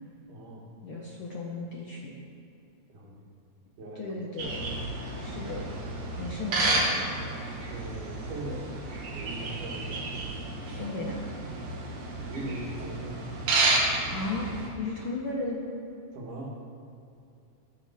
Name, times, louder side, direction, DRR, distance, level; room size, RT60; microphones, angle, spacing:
voice 1, 0.3-0.7 2.9-3.2 3.8-4.2 7.5-8.7 9.1-10.0 12.3-13.2 16.1-16.5, right 1 dB, 85° right, -2 dB, 3.1 m, -40 dB
voice 2, 0.8-2.2 3.9-4.6 5.2-5.7 6.2-7.1 10.8-11.3 14.1-14.5 14.8-15.6, left 2 dB, 65° left, -3 dB, 1.3 m, -35 dB
sound 1, 4.4-14.7, right 2 dB, 60° right, 2.4 m, -31 dB
13.0 x 8.8 x 3.5 m, 2.7 s
omnidirectional pair, 3.5 m